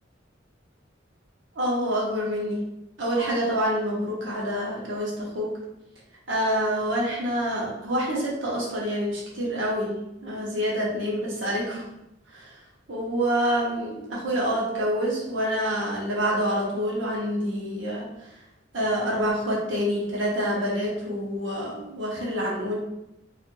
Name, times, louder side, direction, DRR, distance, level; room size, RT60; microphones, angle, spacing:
voice 1, 1.5-2.6 3.0-5.5 6.3-11.9 12.3-12.5 12.9-18.3 18.7-22.8, equal, 65° right, -4 dB, 0.9 m, -27 dB
2.9 x 2.5 x 2.6 m, 0.88 s
head